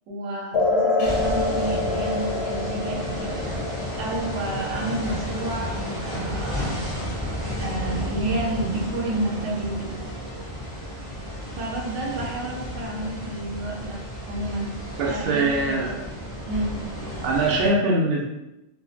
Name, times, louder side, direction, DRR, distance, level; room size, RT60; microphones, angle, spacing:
voice 1, 0.1-3.4 4.0-6.7 7.6-10.0 11.5-14.0 14.3-14.7 15.0-15.9 16.5-16.8, right 2 dB, 90° right, -1 dB, 0.9 m, -30 dB
sound 1, 0.5-7.6, left 3 dB, 65° left, 0.7 m, -28 dB
sound 2, 1.0-17.7, equal, 30° right, 0.8 m, -32 dB
voice 2, 15.0-16.0 17.2-18.2, right 2 dB, 60° right, -1 dB, 0.7 m, -22 dB
2.6 x 2.1 x 2.4 m, 0.93 s
omnidirectional pair, 1.2 m